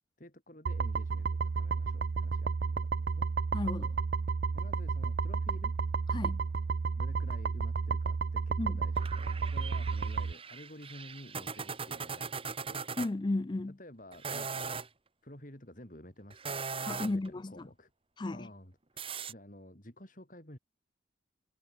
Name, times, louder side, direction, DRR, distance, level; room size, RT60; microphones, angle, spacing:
voice 1, 0.2-3.2 4.5-5.7 7.0-12.8 13.7-14.7 15.2-16.6 17.0-17.9 18.3-20.6, left 1 dB, 45° left, 4.7 m, -51 dB
sound 1, 0.7-10.3, right 5 dB, 55° right, 0.4 m, -32 dB
voice 2, 3.5-3.9 6.1-6.4 8.6-8.8 13.0-13.7 16.9-17.5 18.2-18.5, left 2 dB, 25° left, 0.4 m, -34 dB
sound 2, 9.0-13.1 14.1-14.9 16.3-17.3 19.0-19.3, right 5 dB, 30° right, 2.2 m, -39 dB
head